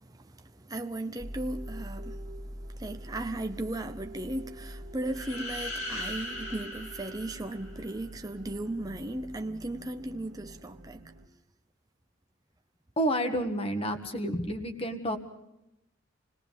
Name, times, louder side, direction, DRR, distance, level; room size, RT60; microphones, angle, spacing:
voice 1, 0.0-11.1, right 1 dB, 20° right, 0.7 m, -36 dB
sound 1, 1.2-11.3, equal, 60° right, 2.1 m, -45 dB
sound 2, 5.1-8.0, left 1 dB, 85° left, 5.9 m, -39 dB
voice 2, 13.0-15.2, equal, 25° left, 1.7 m, -30 dB
28.0 x 19.0 x 5.2 m
head